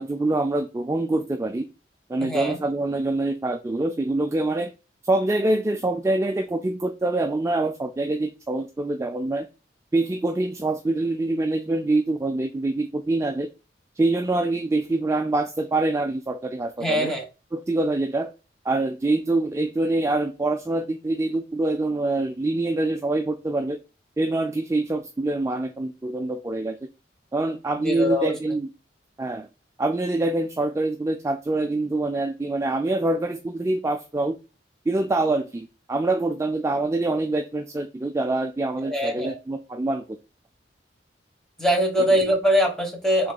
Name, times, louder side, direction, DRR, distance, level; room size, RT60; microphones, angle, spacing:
voice 1, 0.0-1.7 2.1-4.7 5.0-9.5 9.9-13.5 14.0-17.1 17.5-18.3 18.6-23.8 24.2-26.8 27.3-28.7 29.2-29.5 29.8-34.4 34.9-40.2 42.0-42.1, right 2 dB, 15° right, 0.3 m, -25 dB
voice 2, 2.2-2.6 16.8-17.2 27.8-28.3 38.8-39.4 41.6-43.3, equal, 5° left, 1.3 m, -22 dB
6.2 x 3.8 x 2.3 m
head